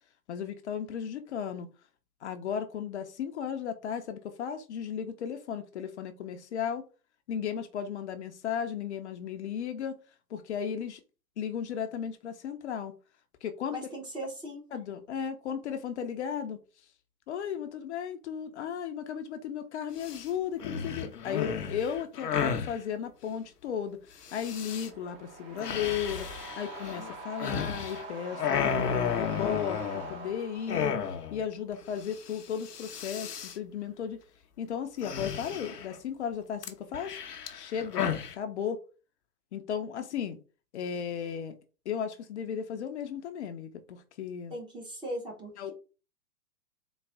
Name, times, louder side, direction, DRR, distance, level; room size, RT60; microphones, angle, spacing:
voice 1, 0.3-1.7 2.2-6.9 7.3-10.0 10.3-11.0 11.4-12.9 13.4-13.8 14.7-16.6 17.3-24.0 24.3-31.0 31.3-34.2 34.6-37.2 37.5-38.1 38.4-38.8 39.5-40.4 40.7-41.5 41.9-44.5 45.6-45.7, left 8 dB, 45° left, 0.6 m, -35 dB
voice 2, 13.7-14.6 44.5-45.7, equal, 10° right, 0.7 m, -39 dB
sound 1, 20.0-20.3 20.6-22.8 24.3-24.9 25.6-28.0 28.3-30.3 30.7-31.4 31.7-31.8 32.1-32.4 32.6-33.6 35.0-35.9 36.6-38.3, left 7 dB, 85° left, 0.8 m, -33 dB
sound 2, 24.2-31.3, right 3 dB, 35° right, 1.1 m, -44 dB
4.0 x 2.3 x 3.4 m
hypercardioid pair, 120°, 46 cm